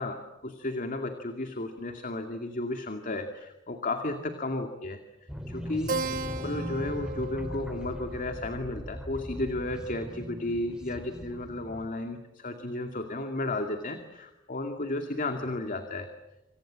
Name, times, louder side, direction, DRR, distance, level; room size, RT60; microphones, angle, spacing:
voice 1, 0.0-6.1 6.4-16.1, left 2 dB, 45° left, 6 dB, 2.3 m, -33 dB
sound 1, 5.3-11.9, equal, 5° right, 3.2 m, -39 dB
Keyboard (musical), 5.9-10.8, right 3 dB, 50° right, 2.3 m, -38 dB
27.0 x 27.0 x 7.6 m, 0.93 s
head